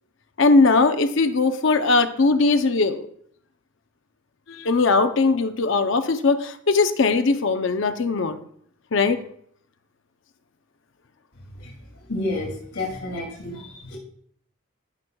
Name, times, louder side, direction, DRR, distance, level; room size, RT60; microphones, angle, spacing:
voice 1, 0.4-3.0 4.5-8.4 8.9-9.2, left 3 dB, 65° left, 9 dB, 0.6 m, -20 dB
voice 2, 12.1-14.0, left 2 dB, 90° left, -1 dB, 2.5 m, -30 dB
15.5 x 6.1 x 2.3 m, 0.65 s
head